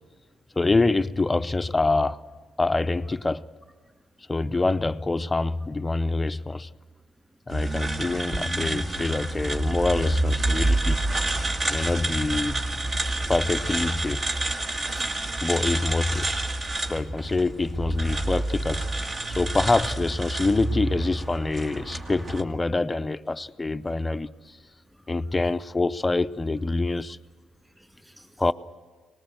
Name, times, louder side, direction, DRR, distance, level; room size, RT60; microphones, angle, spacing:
voice 1, 0.6-2.2 2.6-3.5 4.3-6.7 7.5-11.0 11.7-12.6 13.3-14.3 15.4-16.3 16.9-18.9 19.3-24.6 25.1-27.2 28.4-28.5, left 3 dB, 20° left, 0.6 m, -25 dB
sound 1, 7.5-22.4, right 2 dB, 35° right, 1.9 m, -28 dB
voice 2, 14.8-15.4 16.6-17.0 24.9-25.2 27.6-28.4, equal, 5° right, 3.2 m, -49 dB
23.5 x 19.5 x 7.9 m
cardioid pair, 90°, 0 cm